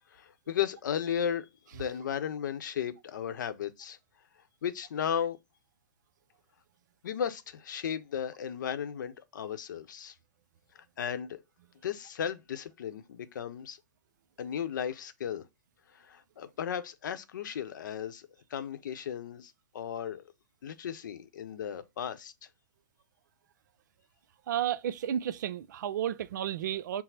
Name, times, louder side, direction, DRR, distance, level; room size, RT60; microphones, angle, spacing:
voice 1, 0.0-4.0 4.6-5.4 7.0-10.1 11.0-11.4 11.8-13.8 14.4-15.4 15.9-20.2 20.6-22.3, left 8 dB, 70° left, 0.7 m, -35 dB
voice 2, 24.5-27.0, right 10 dB, 65° right, 0.4 m, -32 dB
6.0 x 2.0 x 2.7 m
hypercardioid pair, 130°, 11 cm